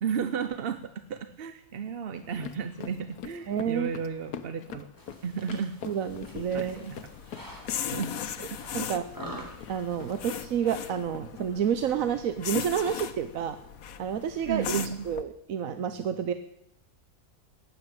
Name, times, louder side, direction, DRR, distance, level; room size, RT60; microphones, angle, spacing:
voice 1, 0.0-4.9 5.2-5.8 6.5-7.0 7.9-8.1 8.5-8.9 14.5-15.1, right 6 dB, 50° right, 11 dB, 0.8 m, -33 dB
sound 1, 2.1-11.2, left 7 dB, 90° left, 1.5 m, -45 dB
voice 2, 3.5-3.9 5.8-6.8 8.7-9.0 9.7-13.6 14.0-16.3, right 8 dB, 65° right, 11 dB, 1.1 m, -29 dB
sound 2, 5.0-10.5, right 1 dB, 10° right, 3.4 m, -47 dB
sound 3, 6.1-15.2, left 8 dB, 70° left, 1.3 m, -38 dB
15.5 x 10.0 x 8.9 m, 0.83 s
omnidirectional pair, 1.6 m